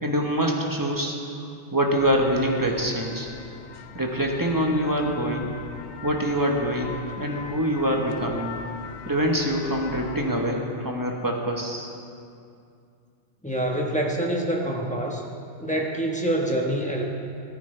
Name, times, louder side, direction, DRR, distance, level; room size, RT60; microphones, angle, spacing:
voice 1, 0.0-1.2 1.7-3.3 3.9-5.5 6.0-8.5 9.1-11.9, equal, 20° right, 0 dB, 1.2 m, -25 dB
sound 1, 1.9-10.2, left 6 dB, 70° left, 0.9 m, -41 dB
voice 2, 13.4-15.2 15.6-17.0, right 1 dB, 5° left, -2 dB, 1.2 m, -26 dB
14.5 x 13.5 x 3.4 m, 2.4 s
omnidirectional pair, 1.2 m